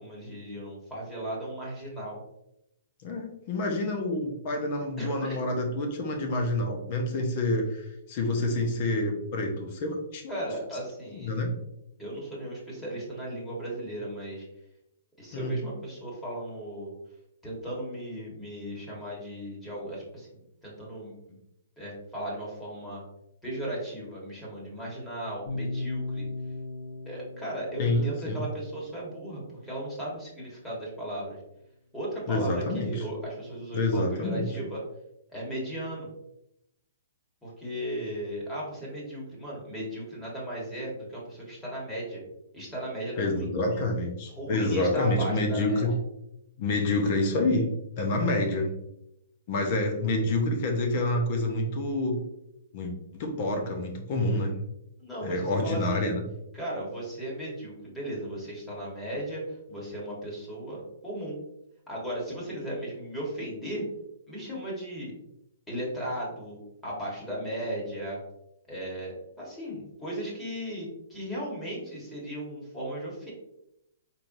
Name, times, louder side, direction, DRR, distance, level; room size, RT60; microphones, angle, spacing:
voice 1, 0.0-2.2 5.0-5.4 10.3-11.3 12.0-14.5 15.2-16.9 17.4-20.3 20.6-21.1 21.8-23.0 23.4-26.3 27.0-31.4 31.9-34.8 35.3-36.1 37.4-42.2 42.5-43.5 44.4-45.8 55.0-56.1 56.5-59.4 59.7-61.4 61.9-63.9 64.3-65.1 65.7-68.2 68.7-73.3, right 1 dB, 5° left, -5 dB, 1.4 m, -36 dB
voice 2, 3.0-10.3 11.1-11.5 15.3-15.6 27.8-28.4 32.3-33.1 33.7-34.5 43.2-46.0 46.6-47.7 48.0-48.7 49.5-52.2 52.7-54.5 55.2-56.2, left 2 dB, 40° left, 3 dB, 0.8 m, -28 dB
sound 1, 25.5-29.5, left 2 dB, 90° left, 1.2 m, -37 dB
4.3 x 3.3 x 2.6 m, 0.82 s
hypercardioid pair, 155°, 0 cm